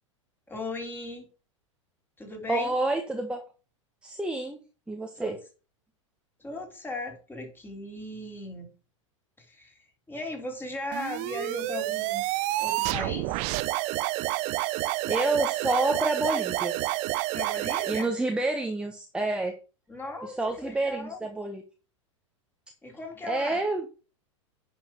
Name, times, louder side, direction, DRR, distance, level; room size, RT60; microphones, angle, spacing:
voice 1, 0.5-1.3 2.2-2.7 5.2-5.3 6.4-8.7 9.4-12.2 12.6-13.4 17.3-18.1 19.9-21.2 22.8-23.6, left 2 dB, 10° left, 2 dB, 3.6 m, -37 dB
voice 2, 2.5-3.4 4.0-4.6 4.9-5.4 15.0-16.7 17.9-19.6 20.2-21.6 23.3-23.9, right 2 dB, 5° right, 4 dB, 1.3 m, -28 dB
sound 1, 10.9-18.1, right 19 dB, 45° right, 0.6 m, -29 dB
10.5 x 5.9 x 4.5 m, 0.34 s
figure-of-eight pair, 90°, 17 cm